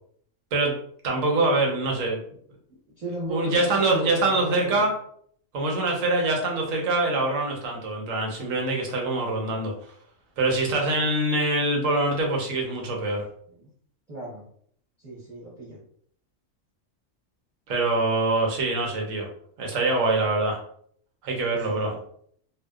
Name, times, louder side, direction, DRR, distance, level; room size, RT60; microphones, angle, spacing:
voice 1, 1.0-2.2 3.3-4.9 5.5-9.7 10.4-13.2 17.7-19.3 19.6-20.6 21.2-21.9, right 2 dB, 85° right, 0 dB, 1.1 m, -24 dB
voice 2, 3.0-3.6 3.9-4.9 9.2-9.3 13.5-13.7 14.1-14.4 15.0-15.8 21.5-22.0, right 1 dB, 35° right, -7 dB, 0.8 m, -36 dB
2.7 x 2.1 x 2.3 m, 0.62 s
omnidirectional pair, 1.3 m